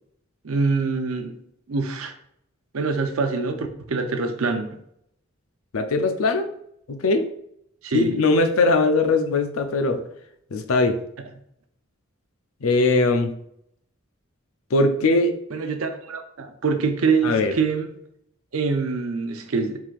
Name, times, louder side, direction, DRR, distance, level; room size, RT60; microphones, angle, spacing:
voice 1, 0.4-1.3 1.7-2.1 2.7-4.8 7.8-8.2 15.5-17.9 18.5-19.8, right 4 dB, 75° right, 6 dB, 0.6 m, -25 dB
voice 2, 5.7-6.5 6.9-7.3 7.9-10.0 10.5-11.0 12.6-13.3 14.7-15.4 17.2-17.5, left 3 dB, 75° left, 7 dB, 0.5 m, -20 dB
4.7 x 3.6 x 2.5 m, 0.71 s
head